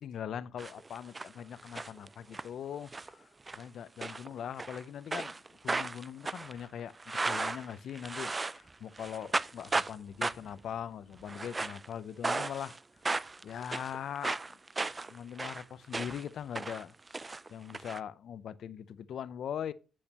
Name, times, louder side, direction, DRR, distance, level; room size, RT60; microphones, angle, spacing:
voice 1, 0.0-12.8 13.4-14.6 15.0-16.9 17.2-19.7, left 9 dB, 65° left, 0.5 m, -41 dB
sound 1, 0.6-1.3 1.6-2.5 2.9-3.1 3.5-3.6 4.0-4.8 5.1-8.7 9.0-9.9 10.2-10.6 11.2-11.9 12.2-12.8 13.0-16.3 16.5-18.0, right 3 dB, 25° right, 0.4 m, -35 dB
8.7 x 6.5 x 2.9 m
cardioid pair, 90°, 0 cm